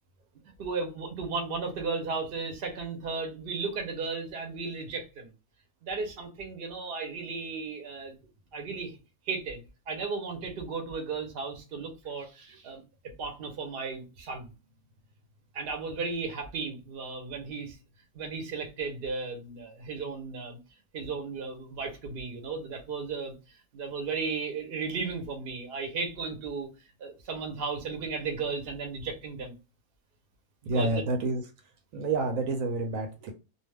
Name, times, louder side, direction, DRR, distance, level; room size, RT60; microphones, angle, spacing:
voice 1, 0.6-5.3 5.8-8.2 8.5-9.0 9.2-12.8 13.2-14.5 15.5-17.8 18.1-20.6 20.9-23.3 23.7-26.7 27.0-29.5 30.7-31.0, right 4 dB, 50° right, 0.8 m, -35 dB
voice 2, 30.7-31.4 31.9-33.3, right 3 dB, 75° right, 1.0 m, -28 dB
2.5 x 2.3 x 3.3 m
omnidirectional pair, 1.5 m